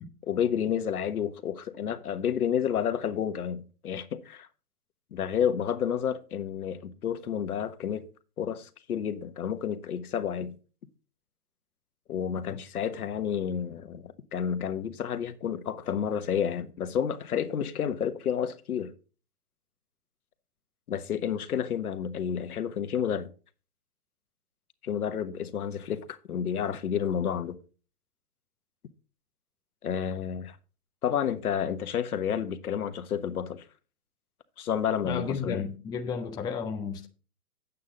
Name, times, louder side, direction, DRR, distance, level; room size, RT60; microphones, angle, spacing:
voice 1, 0.3-4.5 5.1-8.1 8.4-10.6 12.1-18.9 20.9-23.3 24.8-27.6 29.8-30.6 31.0-33.6 34.6-35.6, left 8 dB, 70° left, 1.4 m, -30 dB
voice 2, 35.0-37.1, left 6 dB, 10° left, 0.7 m, -33 dB
9.5 x 8.4 x 3.9 m
hypercardioid pair, 140°, 46 cm